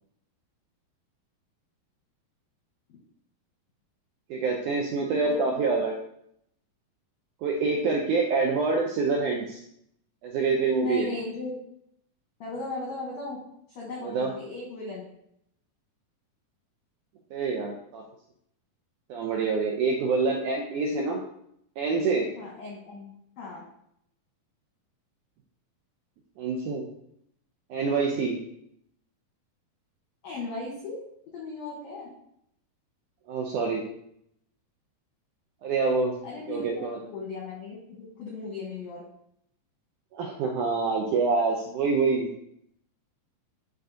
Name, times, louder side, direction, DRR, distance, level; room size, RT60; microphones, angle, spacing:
voice 1, 4.3-6.0 7.4-9.6 10.2-11.1 14.0-14.3 17.3-18.0 19.1-21.2 21.8-22.3 26.4-26.9 27.7-28.4 33.3-33.8 35.6-36.2 36.5-37.1 40.1-42.4, right 4 dB, 85° right, 0 dB, 1.8 m, -26 dB
voice 2, 5.2-5.6 10.7-11.6 12.4-13.4 13.7-15.1 22.4-23.6 30.2-31.0 31.3-32.1 36.2-39.0, left 3 dB, 70° left, -3 dB, 1.7 m, -37 dB
10.5 x 3.7 x 2.6 m, 0.72 s
omnidirectional pair, 4.4 m